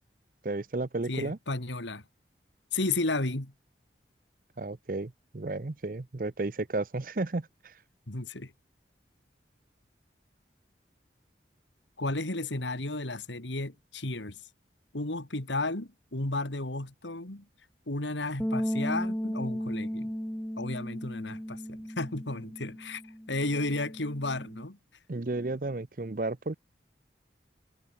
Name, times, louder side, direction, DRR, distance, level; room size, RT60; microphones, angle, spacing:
voice 1, 0.4-1.4 4.6-7.7 25.1-26.5, right 2 dB, 50° right, 0.7 m, -33 dB
voice 2, 1.1-2.0 2.7-3.5 8.1-8.5 12.0-14.4 14.9-17.4 17.9-20.1 20.6-23.0 23.3-24.8, left 2 dB, 90° left, 2.8 m, -33 dB
sound 1, 18.4-24.6, equal, 5° left, 1.0 m, -35 dB
head